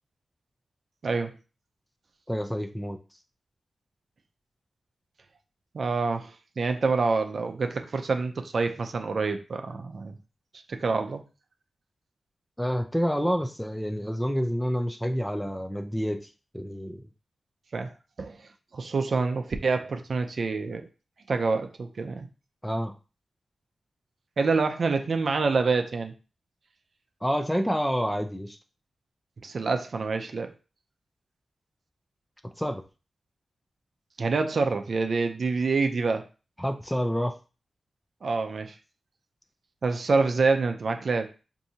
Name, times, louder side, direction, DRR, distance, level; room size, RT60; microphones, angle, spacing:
voice 1, 1.0-1.4 5.7-10.2 10.7-11.2 17.7-17.9 18.2-18.4 18.7-20.9 21.3-22.3 24.4-26.1 29.4-30.5 34.2-36.3 38.2-38.8 39.8-41.3, right 4 dB, 55° right, 6 dB, 0.5 m, -27 dB
voice 2, 2.3-3.0 12.6-17.1 22.6-22.9 27.2-28.6 32.6-32.8 36.6-37.3, equal, 5° left, 6 dB, 0.4 m, -28 dB
4.8 x 2.7 x 2.7 m, 0.33 s
wide cardioid pair, 125°, 0 cm